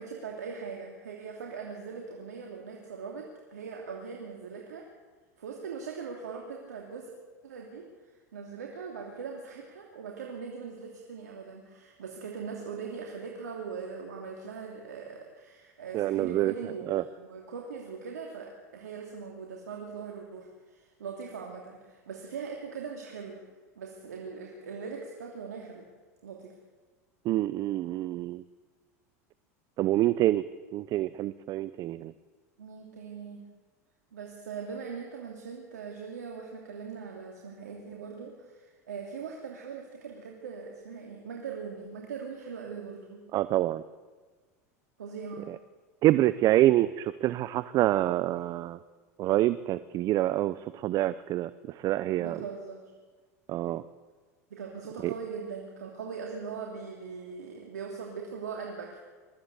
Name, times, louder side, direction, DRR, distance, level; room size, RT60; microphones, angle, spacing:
voice 1, 0.0-4.9 5.4-7.1 7.4-23.4 23.8-25.9 26.2-26.5 32.6-33.5 34.1-43.3 45.0-45.5 52.2-52.9 54.5-59.0, right 5 dB, 90° right, 0 dB, 2.8 m, -41 dB
voice 2, 15.9-16.5 16.9-17.0 27.3-28.4 29.8-30.4 30.7-32.1 43.3-43.8 46.0-48.8 49.2-51.5 51.8-52.4 53.5-53.8 55.0-55.1, right 15 dB, 45° right, 15 dB, 0.7 m, -26 dB
22.0 x 14.5 x 8.2 m, 1.4 s
hypercardioid pair, 100°, 9 cm